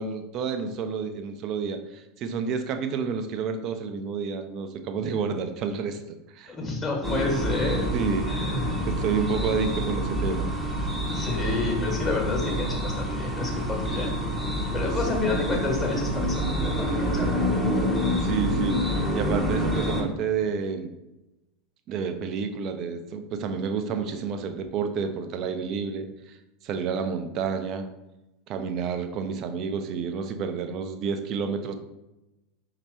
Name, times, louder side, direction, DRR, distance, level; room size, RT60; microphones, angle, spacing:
voice 1, 0.0-6.0 6.3-6.5 7.9-8.2 8.9-10.5 15.1-15.2 18.2-20.9 21.9-26.4 26.6-27.9 28.5-31.7, right 5 dB, 40° right, 8 dB, 0.5 m, -29 dB
voice 2, 6.5-7.9 8.3-8.8 11.1-14.1 14.7-17.4, left 3 dB, 20° left, -1 dB, 1.4 m, -29 dB
sound 1, 7.0-20.0, equal, ahead, 0.9 m, -27 dB
5.8 x 2.8 x 3.2 m, 0.96 s
figure-of-eight pair, 80°, 0 cm